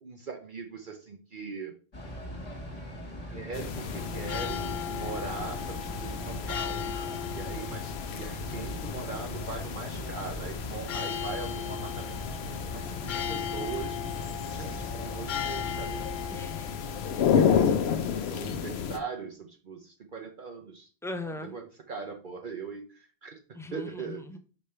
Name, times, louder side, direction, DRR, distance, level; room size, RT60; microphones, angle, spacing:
voice 1, 0.0-1.7 3.3-6.9 7.3-12.2 12.7-14.0 14.4-16.3 17.3-20.9 21.5-23.4 23.7-24.2, right 5 dB, 55° right, 3 dB, 0.9 m, -40 dB
sound 1, 1.9-16.3, equal, 35° left, 1.5 m, -41 dB
sound 2, 3.5-19.0, left 7 dB, 80° left, 0.9 m, -32 dB
sound 3, 3.9-17.6, left 8 dB, 60° left, 0.6 m, -38 dB
voice 2, 16.3-16.8 17.1-17.3 21.0-21.5 23.5-24.4, left 2 dB, 5° left, 7 dB, 0.5 m, -39 dB
5.4 x 5.0 x 4.3 m, 0.37 s
omnidirectional pair, 1.1 m